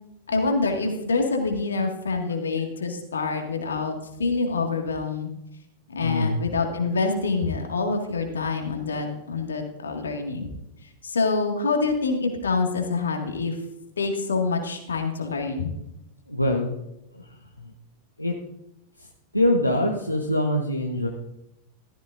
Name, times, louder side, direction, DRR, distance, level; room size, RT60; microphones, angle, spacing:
voice 1, 0.3-5.3 5.9-10.5 11.0-13.6 14.0-15.7, left 4 dB, 70° left, 3 dB, 2.0 m, -26 dB
voice 2, 6.0-6.4 16.3-16.7 17.6-17.7 18.2-18.3 19.3-21.1, left 1 dB, 90° left, 0 dB, 1.1 m, -23 dB
15.0 x 13.5 x 2.6 m, 0.86 s
figure-of-eight pair, 90°, 0 cm